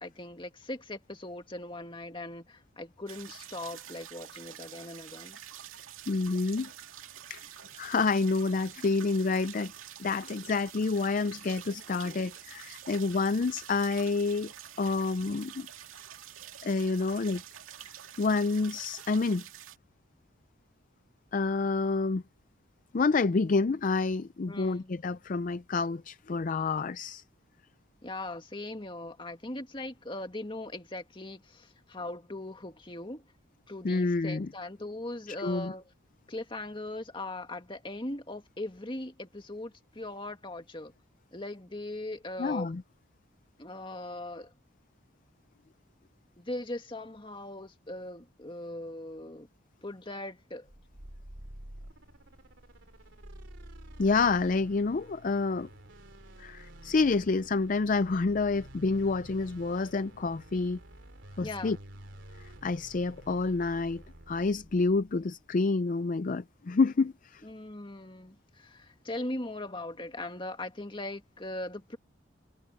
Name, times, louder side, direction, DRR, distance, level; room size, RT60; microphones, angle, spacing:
voice 1, 0.0-5.4 24.5-24.9 28.0-33.2 33.7-35.8 36.3-40.9 41.3-42.7 43.6-44.5 46.4-49.5 49.8-50.7 61.4-61.8 67.4-72.0, left 1 dB, 25° left, 2.0 m, -40 dB
sound 1, 3.1-19.8, right 10 dB, 90° right, 2.4 m, -47 dB
voice 2, 6.1-6.7 7.3-7.4 7.8-9.7 10.0-14.5 14.8-15.7 16.6-17.4 18.2-19.4 21.3-22.2 22.9-27.2 33.8-34.5 35.3-35.7 42.4-42.8 54.0-55.7 56.4-60.8 61.4-61.8 62.6-67.4, left 3 dB, 40° left, 0.4 m, -28 dB
sound 2, 50.6-65.2, right 1 dB, 65° right, 3.3 m, -50 dB
head